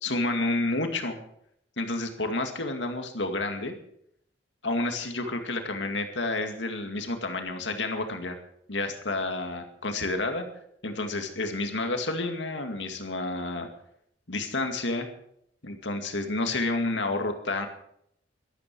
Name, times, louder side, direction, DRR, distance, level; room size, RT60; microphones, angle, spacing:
voice 1, 0.0-1.2 1.8-3.8 4.6-8.4 8.7-10.5 10.8-13.7 14.3-15.1 15.6-17.7, left 2 dB, 80° left, 5 dB, 2.2 m, -30 dB
13.0 x 13.0 x 6.2 m, 0.72 s
head